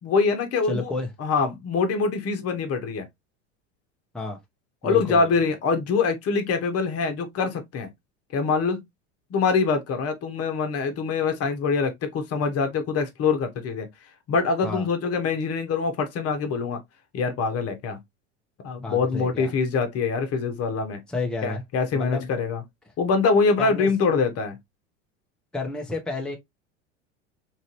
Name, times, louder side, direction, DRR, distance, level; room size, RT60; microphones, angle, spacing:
voice 1, 0.0-0.9 1.2-3.1 4.8-7.9 8.3-8.8 9.3-13.9 14.3-16.8 17.1-18.0 18.6-21.0 21.4-22.6 23.0-24.6, left 4 dB, 40° left, 1.0 m, -24 dB
voice 2, 0.7-1.1 4.1-4.4 4.8-5.5 14.6-14.9 18.8-19.5 21.1-21.6 21.9-22.3 23.6-23.9 25.5-26.4, left 3 dB, ahead, 0.8 m, -31 dB
3.1 x 2.6 x 2.9 m
hypercardioid pair, 90°, 36 cm